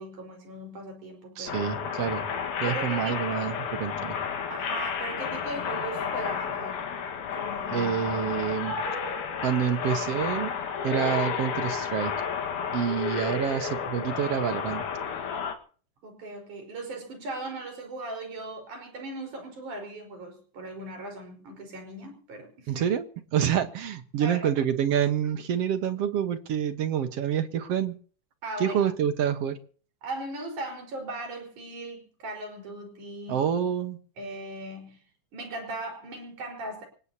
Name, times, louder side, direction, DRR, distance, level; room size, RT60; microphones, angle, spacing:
voice 1, 0.0-1.7 2.7-3.2 4.5-6.9 7.3-7.9 16.0-22.9 24.2-24.5 28.4-28.8 30.0-33.5 34.2-35.0 35.3-36.9, right 2 dB, 75° right, 3 dB, 6.3 m, -38 dB
voice 2, 1.4-2.2 2.6-4.2 7.7-8.7 9.4-10.5 10.8-12.1 12.7-14.8 22.7-23.0 23.3-27.9 28.6-29.6 33.3-34.0, right 9 dB, 60° right, 8 dB, 2.2 m, -27 dB
sound 1, 1.5-15.6, left 6 dB, 80° left, 3.1 m, -31 dB
27.5 x 17.0 x 2.9 m, 0.43 s
omnidirectional pair, 3.5 m